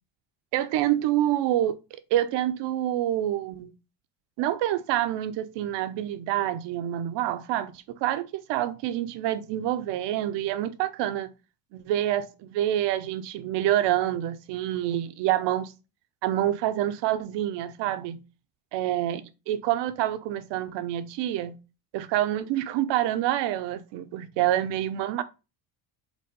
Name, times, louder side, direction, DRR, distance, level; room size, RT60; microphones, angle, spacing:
voice 1, 0.5-1.8 2.1-3.7 4.4-7.7 8.0-11.3 11.7-15.7 16.2-18.2 18.7-21.5 21.9-25.2, right 12 dB, 70° right, 0.9 m, -27 dB
5.3 x 4.3 x 5.3 m
cardioid pair, 165°, 44 cm